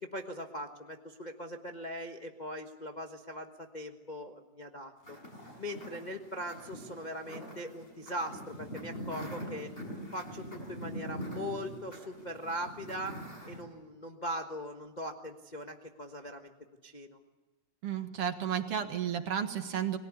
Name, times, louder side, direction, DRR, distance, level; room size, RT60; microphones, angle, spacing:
voice 1, 0.0-5.2 5.6-9.7 10.1-13.1 13.5-16.5 16.8-17.2, equal, 75° left, 3 dB, 0.4 m, -40 dB
sound 1, 5.0-13.6, equal, 15° left, 6.5 m, -43 dB
voice 2, 17.8-20.0, right 8 dB, 55° right, 7 dB, 2.3 m, -32 dB
30.0 x 20.5 x 8.4 m, 1.2 s
omnidirectional pair, 3.4 m